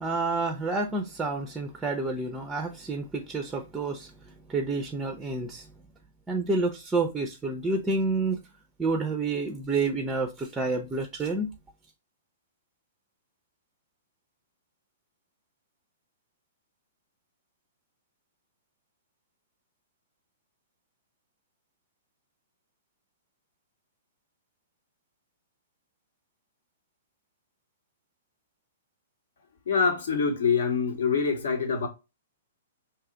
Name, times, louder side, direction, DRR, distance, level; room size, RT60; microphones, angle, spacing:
voice 1, 0.0-4.1 4.5-5.7 6.3-8.4 8.8-11.5, right 3 dB, 10° right, 0.5 m, -29 dB
voice 2, 29.7-31.9, left 5 dB, 65° left, 0.9 m, -25 dB
2.7 x 2.4 x 3.7 m
figure-of-eight pair, 115°, 0 cm